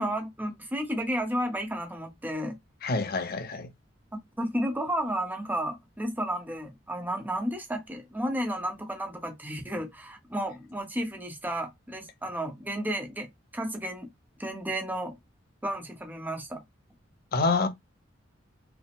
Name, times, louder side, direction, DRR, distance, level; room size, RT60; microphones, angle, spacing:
voice 1, 0.0-2.6 4.4-13.3 13.5-14.1 14.4-15.1 15.6-16.6, equal, 10° right, 0.8 m, -32 dB
voice 2, 2.8-3.7 17.3-17.7, left 3 dB, 55° left, 0.7 m, -27 dB
4.8 x 2.1 x 3.5 m
head